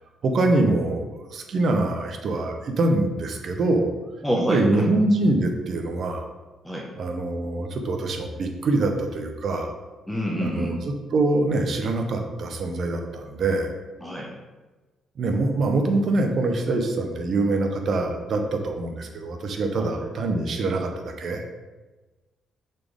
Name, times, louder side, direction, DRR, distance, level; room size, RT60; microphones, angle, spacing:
voice 1, 0.2-3.9 4.5-6.3 7.0-9.7 10.4-13.7 15.2-21.4, right 2 dB, 55° right, 4 dB, 0.9 m, -24 dB
voice 2, 4.2-4.9 6.6-6.9 10.1-10.8 14.0-14.3, equal, 5° left, -3 dB, 0.9 m, -26 dB
6.5 x 4.4 x 3.6 m, 1.2 s
cardioid pair, 90°, 0 cm